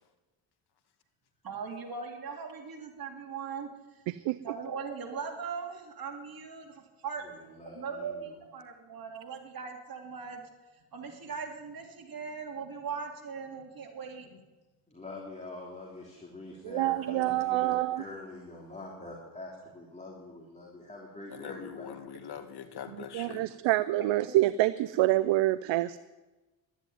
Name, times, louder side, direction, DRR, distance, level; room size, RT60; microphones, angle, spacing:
voice 1, 1.4-4.0 4.4-10.4 10.9-14.3 24.0-24.1, right 5 dB, 45° right, 2 dB, 3.0 m, -40 dB
voice 2, 4.1-4.4 16.6-18.0 23.0-26.0, right 16 dB, 65° right, 15 dB, 0.6 m, -27 dB
voice 3, 7.2-8.4 14.9-22.0, left 2 dB, 15° left, -2 dB, 3.3 m, -45 dB
voice 4, 21.3-23.4, left 8 dB, 50° left, 7 dB, 2.0 m, -42 dB
12.0 x 10.5 x 9.4 m, 1.2 s
cardioid pair, 90°, 49 cm